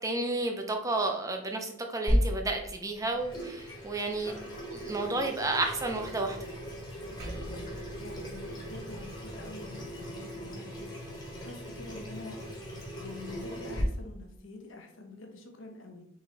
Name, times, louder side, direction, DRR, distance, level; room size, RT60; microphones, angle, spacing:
voice 1, 0.0-4.3 4.7-6.4, right 2 dB, 15° right, 3 dB, 0.5 m, -31 dB
Water tap faucet / Sink (filling or washing), 2.1-13.8, equal, 20° left, 1.0 m, -36 dB
Percussion, 7.2-12.0, right 1 dB, 50° right, 1.2 m, -48 dB
voice 2, 8.0-11.0 11.4-12.6 13.0-16.1, left 2 dB, 65° left, 3 dB, 0.7 m, -46 dB
3.9 x 3.1 x 3.8 m, 0.73 s
head